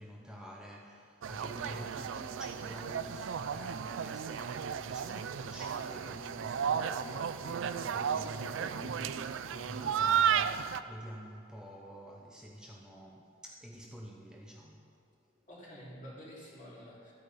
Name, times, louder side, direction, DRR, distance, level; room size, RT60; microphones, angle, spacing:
voice 1, 0.0-14.9, equal, 5° right, -1 dB, 0.6 m, -48 dB
sound 1, 1.2-10.8, right 7 dB, 70° right, 0.4 m, -34 dB
voice 2, 1.4-1.8 15.5-17.1, equal, 40° left, -6 dB, 2.8 m, -49 dB
13.0 x 8.5 x 4.1 m, 2.5 s
head